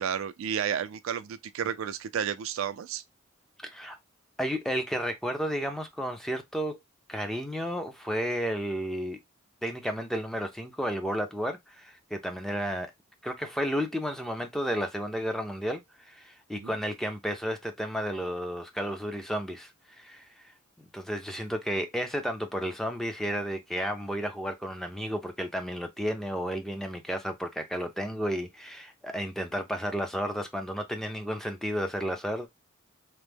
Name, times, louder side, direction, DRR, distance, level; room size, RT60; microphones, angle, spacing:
voice 1, 0.0-3.0 16.5-16.7, right 8 dB, 70° right, 0.3 m, -32 dB
voice 2, 4.4-6.8 7.1-9.2 9.6-12.9 13.2-20.5 20.9-32.5, equal, ahead, 0.4 m, -32 dB
3.0 x 2.0 x 3.3 m
head